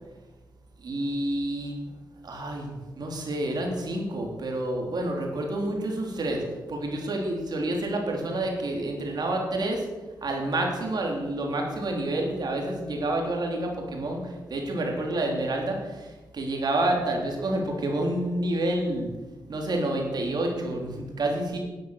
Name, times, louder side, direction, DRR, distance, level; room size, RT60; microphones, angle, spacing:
voice 1, 0.8-1.8 2.2-6.4 6.7-9.9 10.2-19.1 19.5-21.6, right 1 dB, 60° right, 1 dB, 3.3 m, -29 dB
10.5 x 9.6 x 6.4 m, 1.2 s
cardioid pair, 60°, 8 cm